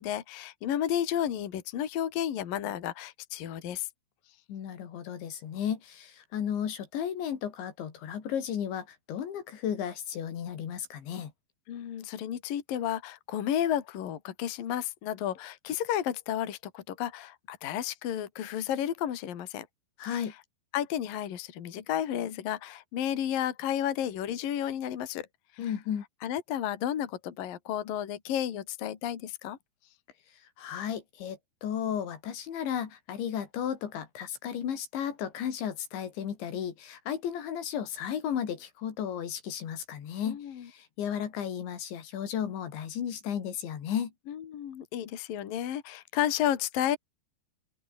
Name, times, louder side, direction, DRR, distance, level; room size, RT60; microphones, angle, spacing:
voice 1, 0.0-3.9 11.7-19.7 20.1-20.2 20.7-25.3 25.5-25.7 26.2-29.6 40.3-40.7 44.3-47.0, left 10 dB, 55° left, 3.7 m, -32 dB
voice 2, 4.5-11.3 20.0-20.3 25.6-26.0 30.6-44.1, left 9 dB, 85° left, 5.4 m, -34 dB
open air
omnidirectional pair, 5.1 m